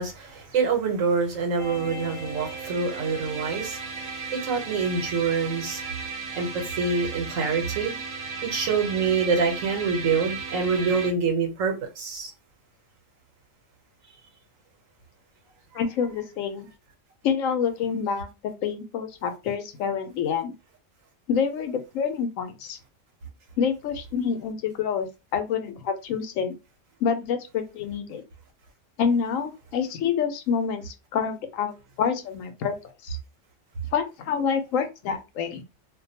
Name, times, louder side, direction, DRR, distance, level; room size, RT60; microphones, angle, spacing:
voice 1, 0.0-3.8 4.3-5.8 6.3-6.5 6.8-7.9 8.4-12.3, right 5 dB, 85° right, 1.2 m, -26 dB
sound 1, 1.6-11.1, right 4 dB, 45° right, 0.8 m, -35 dB
voice 2, 15.7-16.7 17.2-20.5 21.3-22.8 23.6-26.5 27.0-28.2 29.0-32.7 33.0-33.2 33.9-35.6, left 7 dB, 85° left, 1.0 m, -27 dB
2.5 x 2.2 x 2.7 m
omnidirectional pair, 1.3 m